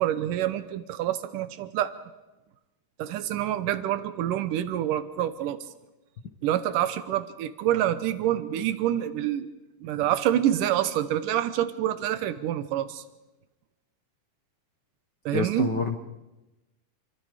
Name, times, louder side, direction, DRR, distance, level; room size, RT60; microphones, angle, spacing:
voice 1, 0.0-1.9 3.0-5.6 6.4-9.5 9.8-13.0 15.3-15.7, right 11 dB, 85° right, 12 dB, 2.5 m, -27 dB
voice 2, 15.3-16.0, left 4 dB, 65° left, 5 dB, 1.1 m, -27 dB
28.0 x 23.0 x 5.0 m, 1.0 s
omnidirectional pair, 3.7 m